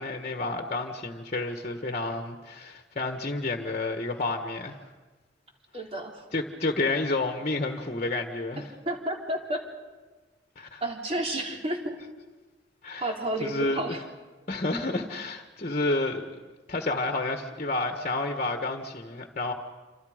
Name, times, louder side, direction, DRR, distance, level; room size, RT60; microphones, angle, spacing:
voice 1, 0.0-4.8 6.3-8.6 10.5-10.8 12.8-13.1 13.4-13.8 14.5-16.3 16.7-19.5, left 2 dB, 40° left, 5 dB, 1.6 m, -30 dB
voice 2, 5.7-6.3 8.6-9.6 10.8-12.0 13.0-14.0, right 1 dB, 35° right, 1 dB, 3.7 m, -31 dB
28.5 x 26.0 x 5.2 m, 1.3 s
head